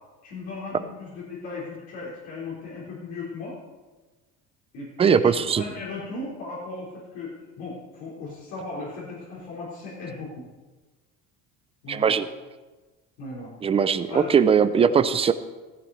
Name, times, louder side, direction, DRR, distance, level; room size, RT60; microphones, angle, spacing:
voice 1, 0.2-3.5 4.7-10.5 11.8-12.2 13.2-13.5 14.1-14.3, left 3 dB, 70° left, -7 dB, 4.1 m, -37 dB
voice 2, 5.0-5.6 11.9-12.3 13.6-15.3, right 6 dB, 20° right, 12 dB, 0.6 m, -20 dB
14.5 x 13.5 x 4.2 m, 1.3 s
cardioid pair, 145°, 31 cm